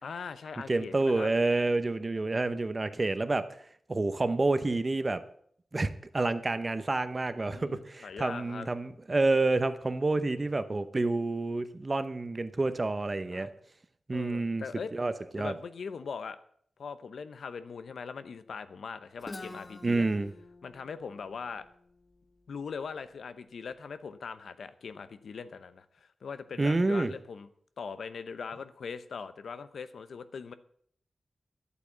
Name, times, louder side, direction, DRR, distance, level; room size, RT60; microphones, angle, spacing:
voice 1, 0.0-1.3 7.5-8.7 13.3-13.5 14.1-14.9 15.4-16.4 16.8-20.1 20.6-21.7 22.5-27.5 27.8-30.5, left 5 dB, 85° left, 12 dB, 0.8 m, -41 dB
voice 2, 0.7-3.5 3.9-5.2 5.7-13.5 14.1-14.6 14.9-15.5 19.8-20.3 26.6-27.1, right 2 dB, 30° right, 12 dB, 0.8 m, -28 dB
Guitar, 19.2-23.0, left 2 dB, 30° left, 1.3 m, -48 dB
11.5 x 8.4 x 7.4 m, 0.63 s
wide cardioid pair, 150°, 0 cm